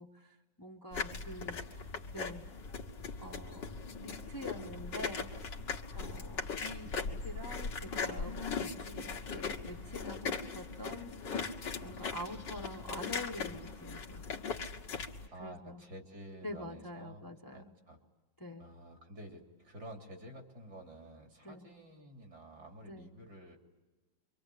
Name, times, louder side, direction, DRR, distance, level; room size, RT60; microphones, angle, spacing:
voice 1, 0.0-1.9 2.1-2.4 3.2-3.7 4.0-5.3 5.9-11.1 11.8-14.5 15.3-15.8 16.4-17.7 18.4-18.7 21.4-21.6 22.9-23.1, left 1 dB, 10° left, 2 dB, 1.3 m, -46 dB
sound 1, 0.9-15.3, left 5 dB, 65° left, 2.3 m, -39 dB
voice 2, 1.4-2.3 6.0-6.3 15.3-18.0 18.6-23.6, right 1 dB, 55° right, 2 dB, 4.1 m, -51 dB
27.5 x 24.5 x 8.7 m, 1.2 s
omnidirectional pair, 2.1 m